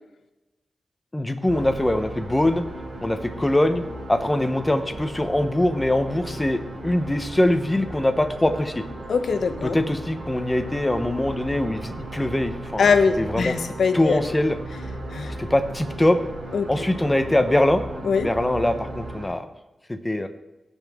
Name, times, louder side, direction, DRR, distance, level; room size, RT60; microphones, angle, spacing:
voice 1, 1.1-2.6 3.0-3.8 4.1-8.8 9.6-12.8 13.2-13.5 13.9-14.6 15.4-16.2 16.7-19.4 19.9-20.3, left 1 dB, 15° left, 8 dB, 0.8 m, -22 dB
sound 1, 1.5-19.3, right 1 dB, 80° right, 2.7 m, -36 dB
voice 2, 9.1-9.8 12.8-14.3 15.1-15.3 16.5-16.9 18.0-18.3, left 5 dB, 90° left, 9 dB, 0.7 m, -22 dB
16.5 x 5.5 x 3.6 m, 1.0 s
wide cardioid pair, 115°, 0 cm